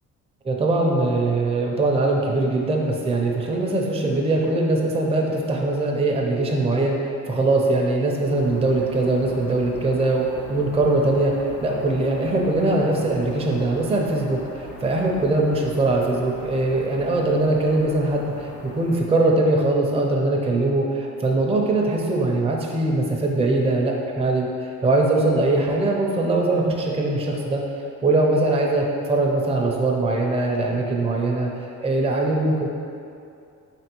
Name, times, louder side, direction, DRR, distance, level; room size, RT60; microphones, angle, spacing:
voice 1, 0.4-27.6 28.0-31.5 31.8-32.7, right 2 dB, 20° right, -1 dB, 0.4 m, -21 dB
sound 1, 8.4-19.0, equal, 50° left, 0.7 m, -40 dB
3.5 x 3.4 x 3.0 m, 2.6 s
cardioid pair, 90°, 30 cm